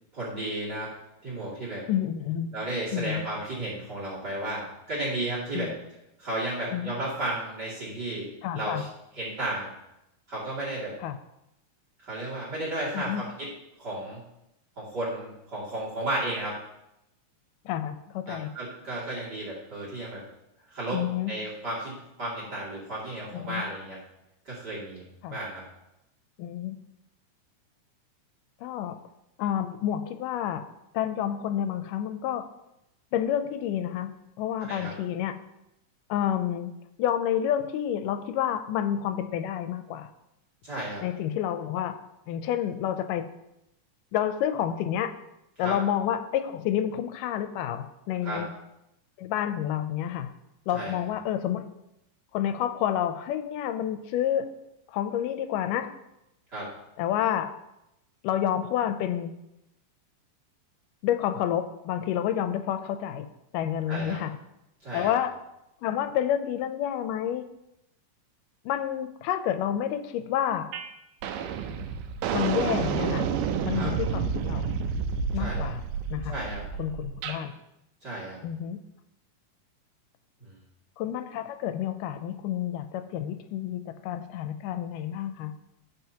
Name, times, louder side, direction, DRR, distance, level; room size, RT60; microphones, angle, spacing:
voice 1, 0.1-0.9 1.2-1.8 2.5-5.7 6.2-8.3 8.5-8.9 9.1-9.7 10.3-10.9 12.0-13.5 13.8-14.2 14.8-16.5 18.3-20.2 20.7-21.0 21.3-24.0 24.4-25.0 25.3-25.6 34.7-34.9 40.6-41.0 45.6-45.7 48.2-48.4 50.7-51.0 56.5-56.7 63.9-64.2 64.8-65.2 73.7-73.9 75.4-75.7 76.3-76.6 78.0-78.4 80.4-80.6, right 1 dB, 35° right, -8 dB, 2.8 m, -33 dB
voice 2, 1.9-2.5 2.9-3.3 5.5-5.7 6.7-6.9 8.4-8.8 11.0-11.2 12.9-13.2 17.7-18.5 20.9-21.3 23.3-23.6 25.2-25.4 26.4-26.8 28.6-29.0 29.4-30.7 30.9-32.5 33.1-35.4 36.1-40.1 41.0-42.0 42.3-43.3 44.1-45.2 45.6-48.5 49.2-50.3 50.7-51.7 52.3-54.5 54.9-55.9 57.0-57.6 58.2-59.4 61.0-63.3 63.5-64.4 64.9-65.4 65.8-67.5 68.7-70.7 72.3-73.3 73.6-74.8 75.3-75.8 76.1-76.3 76.8-77.5 78.4-78.8 81.0-85.5, left 10 dB, 85° left, 9 dB, 2.2 m, -29 dB
sound 1, 70.7-70.9 71.2-77.4, right 6 dB, 90° right, 2.2 m, -30 dB
14.5 x 5.4 x 2.9 m, 0.85 s
omnidirectional pair, 3.8 m